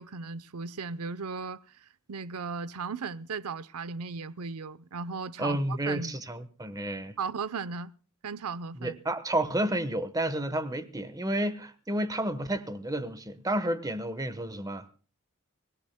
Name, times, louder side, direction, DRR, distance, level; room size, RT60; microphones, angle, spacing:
voice 1, 0.0-1.6 2.1-6.2 7.2-7.9 8.2-9.0, right 5 dB, 85° right, 0.7 m, -36 dB
voice 2, 5.4-7.2 8.7-14.9, right 1 dB, 15° right, 1.1 m, -31 dB
24.5 x 18.0 x 2.2 m
head